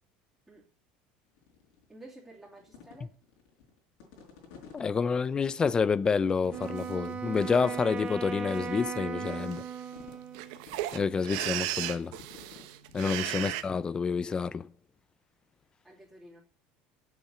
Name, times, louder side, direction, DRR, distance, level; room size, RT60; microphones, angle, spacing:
sound 1, 1.4-1.8 2.3-4.8 5.3-5.4 5.9-6.0 6.3-7.2 7.5-7.8 8.1-9.4 9.9-10.3 10.6-11.1 11.5-13.6, left 6 dB, 75° left, 5.0 m, -51 dB
voice 1, 1.9-3.1 15.8-16.4, right 1 dB, 5° right, 2.9 m, -51 dB
voice 2, 4.7-9.6 10.9-12.1 12.9-14.7, left 5 dB, 25° left, 0.4 m, -28 dB
Wind instrument woodwind instrument, 6.5-10.6, right 6 dB, 30° right, 1.2 m, -37 dB
sound 2, 6.8-6.9 7.4-7.8 8.5-8.7 9.0-9.1 9.2-13.6, right 15 dB, 75° right, 1.0 m, -36 dB
8.1 x 6.8 x 8.0 m
supercardioid pair, 120°, 4 cm